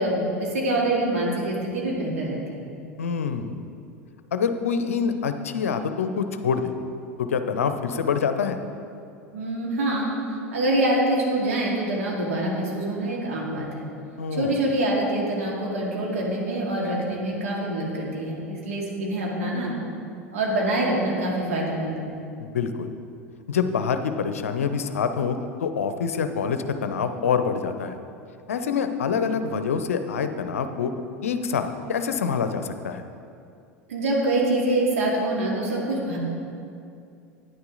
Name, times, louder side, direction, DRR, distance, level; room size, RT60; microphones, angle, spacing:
voice 1, 0.0-2.6 9.3-10.1 10.5-13.9 14.3-19.7 20.3-22.1 33.9-36.2, right 1 dB, 70° right, -3 dB, 2.2 m, -25 dB
voice 2, 3.0-3.6 4.3-6.7 7.2-8.6 14.2-14.6 22.4-22.9 23.5-28.0 28.5-30.9 31.2-33.0, left 6 dB, 75° left, 9 dB, 0.6 m, -26 dB
9.9 x 9.7 x 3.9 m, 2.5 s
figure-of-eight pair, 80°, 8 cm